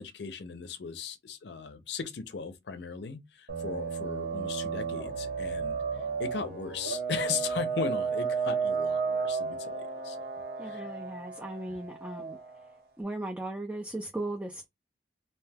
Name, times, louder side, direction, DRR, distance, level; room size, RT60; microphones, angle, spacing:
voice 1, 0.0-5.8 6.2-10.3 10.6-10.9, left 5 dB, 70° left, 0.5 m, -37 dB
sound 1, 3.5-12.7, right 5 dB, 55° right, 0.8 m, -33 dB
voice 2, 10.6-12.4 13.0-14.6, right 2 dB, 10° right, 0.3 m, -37 dB
2.7 x 2.2 x 3.2 m
head